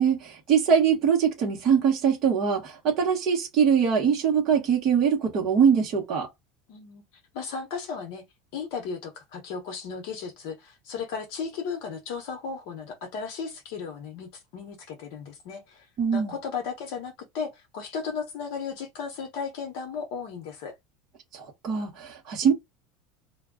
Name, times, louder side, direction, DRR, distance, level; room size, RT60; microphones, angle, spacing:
voice 1, 0.0-6.3 16.0-16.3 21.3-22.5, right 7 dB, 30° right, 1.0 m, -23 dB
voice 2, 6.7-7.0 7.3-8.2 8.5-15.9 16.1-20.7, left 5 dB, 55° left, 0.8 m, -35 dB
2.2 x 2.2 x 3.5 m
cardioid pair, 180°, 0 cm